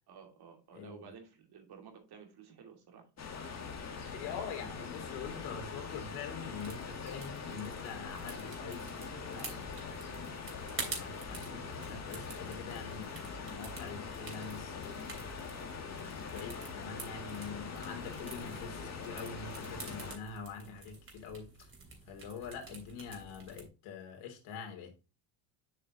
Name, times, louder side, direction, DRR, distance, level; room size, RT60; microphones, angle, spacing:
voice 1, 0.1-3.0 6.1-6.3, right 6 dB, 50° right, 2.6 m, -53 dB
voice 2, 0.7-1.1 3.9-10.1 10.9-21.7 22.1-24.9, left 6 dB, 75° left, 3.1 m, -45 dB
sound 1, 3.2-20.2, left 5 dB, 35° left, 1.9 m, -43 dB
sound 2, 6.5-23.7, right 3 dB, 25° right, 3.0 m, -49 dB
7.3 x 6.5 x 2.9 m
supercardioid pair, 105°, 48 cm